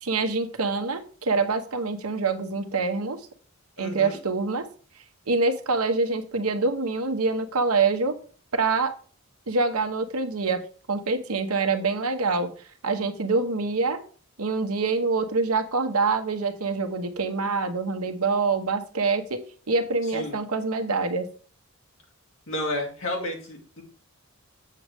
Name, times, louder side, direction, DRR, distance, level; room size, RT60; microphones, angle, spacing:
voice 1, 0.0-3.2 3.8-4.6 5.3-8.1 8.5-8.9 9.5-10.6 10.9-12.5 12.8-14.0 14.4-19.4 19.7-21.3, right 4 dB, 85° right, 8 dB, 1.0 m, -25 dB
voice 2, 3.8-4.2 20.1-20.4 22.5-23.8, left 1 dB, 60° left, 0 dB, 2.4 m, -31 dB
7.7 x 6.3 x 3.4 m, 0.42 s
head